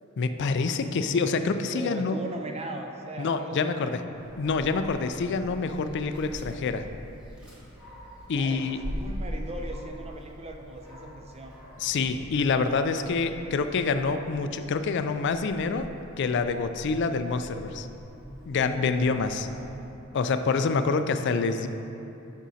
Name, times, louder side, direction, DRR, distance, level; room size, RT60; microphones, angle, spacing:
voice 1, 0.2-2.2 3.2-4.0 4.4-6.8 8.3-8.8 11.8-15.9 16.2-17.9 18.5-19.5 20.1-21.7, left 4 dB, 55° left, 9 dB, 0.4 m, -26 dB
voice 2, 1.7-4.0 8.4-11.6 13.4-13.8 19.2-20.1, right 1 dB, 30° right, 3 dB, 0.6 m, -40 dB
Dog, 4.1-19.9, equal, 5° right, 1.7 m, -42 dB
10.0 x 6.1 x 2.8 m, 2.9 s
head